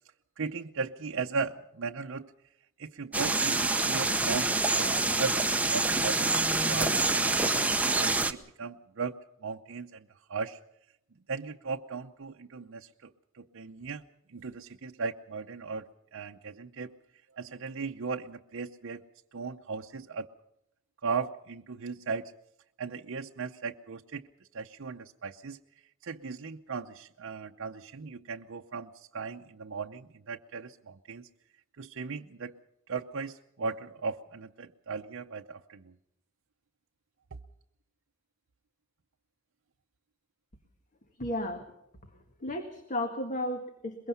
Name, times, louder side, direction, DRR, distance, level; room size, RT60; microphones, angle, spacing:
voice 1, 0.4-2.3 2.8-5.4 5.7-10.6 11.3-13.1 13.4-14.0 14.3-16.9 17.3-19.0 19.3-20.3 21.0-22.3 22.8-24.3 24.5-25.6 26.0-31.3 31.8-32.5 32.9-35.9, right 4 dB, 65° right, 3 dB, 0.7 m, -37 dB
sound 1, 3.1-8.3, right 3 dB, 5° right, 0.9 m, -26 dB
voice 2, 41.2-41.7 42.4-44.1, left 1 dB, 40° left, 6 dB, 1.8 m, -34 dB
22.0 x 22.0 x 5.7 m, 0.80 s
head